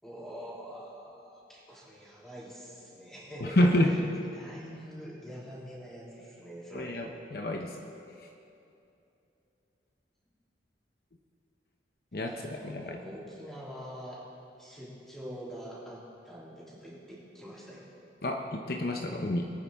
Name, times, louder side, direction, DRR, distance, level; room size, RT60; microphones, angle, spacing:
voice 1, 0.0-4.0 4.3-7.0 12.3-14.3 14.6-17.9, equal, ahead, -7 dB, 3.2 m, -45 dB
voice 2, 3.4-3.9 6.7-7.7 12.1-13.0 18.2-19.5, left 1 dB, 60° left, 3 dB, 0.8 m, -28 dB
23.0 x 9.5 x 3.6 m, 2.7 s
head